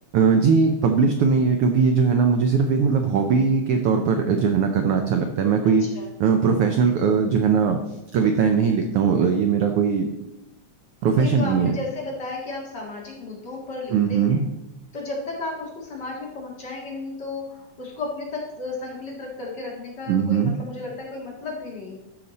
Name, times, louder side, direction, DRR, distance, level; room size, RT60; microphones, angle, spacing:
voice 1, 0.1-5.9 6.2-7.8 8.1-10.1 11.0-11.8 13.9-14.5 20.1-20.6, right 5 dB, 85° right, 5 dB, 1.2 m, -20 dB
voice 2, 5.6-6.1 11.1-14.4 14.9-22.0, left 3 dB, 40° left, -2 dB, 2.0 m, -34 dB
13.0 x 5.0 x 4.0 m, 0.93 s
omnidirectional pair, 3.4 m